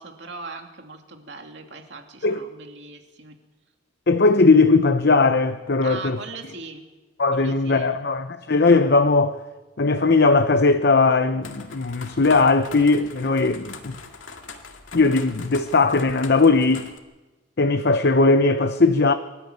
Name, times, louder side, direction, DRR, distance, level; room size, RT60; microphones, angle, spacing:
voice 1, 0.0-3.4 5.8-6.8 7.3-8.0, right 3 dB, 65° right, 2.7 m, -39 dB
voice 2, 4.1-6.2 7.2-9.4 9.8-14.0 14.9-16.9 17.6-19.1, left 3 dB, 55° left, 0.8 m, -18 dB
sound 1, 11.4-17.0, left 4 dB, 90° left, 2.2 m, -41 dB
23.5 x 13.0 x 9.2 m
head